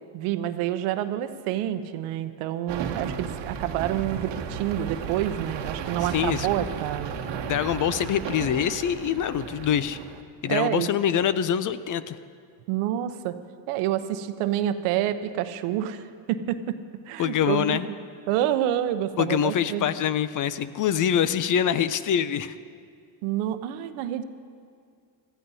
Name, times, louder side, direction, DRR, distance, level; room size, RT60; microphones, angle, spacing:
voice 1, 0.1-7.1 10.5-10.9 12.7-13.4 13.7-16.8 17.1-17.8 18.3-19.9 23.2-24.2, right 12 dB, 80° right, 11 dB, 0.8 m, -28 dB
sound 1, 2.7-10.2, right 6 dB, 55° right, 1.1 m, -34 dB
voice 2, 6.1-6.5 7.5-10.0 10.4-12.2 17.2-17.9 19.2-22.6, left 9 dB, 40° left, 14 dB, 0.5 m, -24 dB
16.0 x 14.0 x 2.7 m, 2.2 s
supercardioid pair, 80°, 50 cm